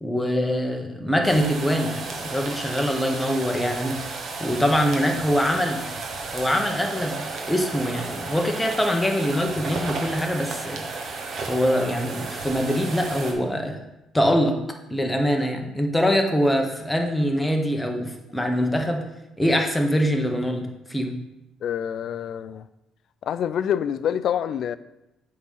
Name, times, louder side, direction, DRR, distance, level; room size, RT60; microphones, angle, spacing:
voice 1, 0.0-4.0 4.4-5.8 6.3-10.8 11.5-13.8 14.1-14.5 14.9-19.0 19.4-20.6 20.9-21.1, equal, 5° left, 2 dB, 1.0 m, -23 dB
sound 1, 1.2-13.3, right 3 dB, 50° right, 1.2 m, -33 dB
voice 2, 21.6-22.7 23.2-24.8, left 9 dB, 60° left, 15 dB, 0.3 m, -26 dB
7.9 x 3.7 x 5.6 m, 0.92 s
cardioid pair, 130°, 0 cm